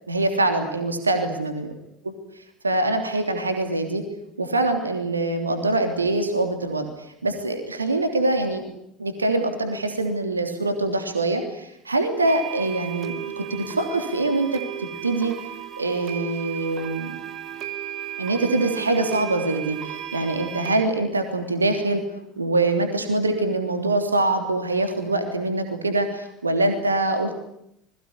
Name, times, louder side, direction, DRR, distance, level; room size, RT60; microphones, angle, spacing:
voice 1, 0.1-1.7 2.0-2.1 2.6-4.0 4.4-6.8 7.2-8.6 9.0-15.3 15.8-17.1 18.2-22.0 22.4-27.3, right 2 dB, 80° right, 6 dB, 3.2 m, -24 dB
sound 1, 12.3-20.8, right 11 dB, 45° right, 2.9 m, -35 dB
27.5 x 21.5 x 9.9 m, 0.78 s
figure-of-eight pair, 65°, 0 cm